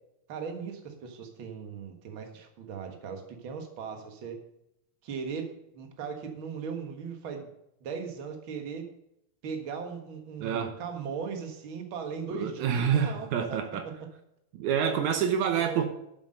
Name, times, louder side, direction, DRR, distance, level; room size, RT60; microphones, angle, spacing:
voice 1, 0.3-4.4 5.0-7.5 7.8-8.9 9.4-13.6 13.8-13.9 15.6-15.9, right 6 dB, 50° right, 5 dB, 2.0 m, -38 dB
voice 2, 10.4-10.8 12.3-13.9 14.5-15.9, right 8 dB, 80° right, 7 dB, 2.3 m, -27 dB
8.3 x 8.1 x 6.5 m, 0.81 s
omnidirectional pair, 3.5 m